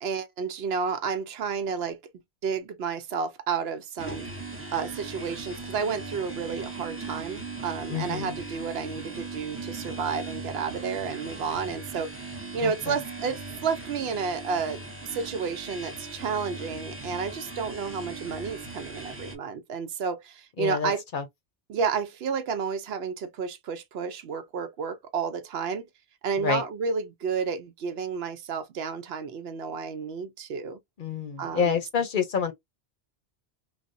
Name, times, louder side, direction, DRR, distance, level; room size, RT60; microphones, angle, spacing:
voice 1, 0.0-2.0 2.4-4.3 4.7-14.8 15.1-21.0 21.7-25.8 26.2-30.8 31.4-31.8, right 6 dB, 70° right, 0.8 m, -31 dB
sound 1, 4.0-19.3, right 3 dB, 15° right, 0.5 m, -39 dB
voice 2, 7.9-8.4 12.6-13.0 20.6-21.2 26.4-26.6 31.0-32.5, left 6 dB, 55° left, 0.8 m, -28 dB
3.2 x 2.0 x 2.5 m
omnidirectional pair, 1.1 m